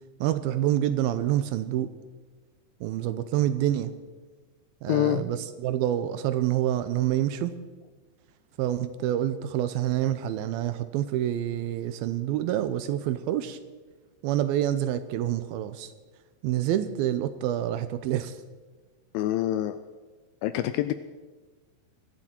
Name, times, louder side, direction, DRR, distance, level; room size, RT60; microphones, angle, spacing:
voice 1, 0.2-1.9 2.8-3.9 4.8-7.5 8.6-13.6 14.2-15.9 16.4-18.4, right 12 dB, 80° right, 12 dB, 2.3 m, -27 dB
voice 2, 4.9-5.2 19.1-19.8 20.4-20.9, left 14 dB, 85° left, 11 dB, 2.1 m, -26 dB
23.5 x 11.0 x 4.4 m, 1.3 s
omnidirectional pair, 4.6 m